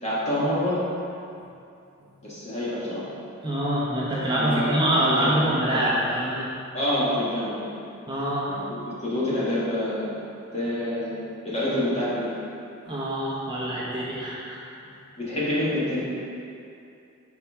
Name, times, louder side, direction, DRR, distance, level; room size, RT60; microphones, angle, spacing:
voice 1, 0.0-0.8 2.2-3.0 4.3-5.8 6.7-7.6 8.5-10.1 10.5-11.1 11.4-12.3 15.2-16.0, left 1 dB, 30° left, -8 dB, 1.5 m, -27 dB
voice 2, 3.4-6.5 8.1-8.5 12.9-14.6, right 1 dB, 20° right, -7 dB, 0.8 m, -25 dB
6.1 x 4.4 x 3.6 m, 2.6 s
head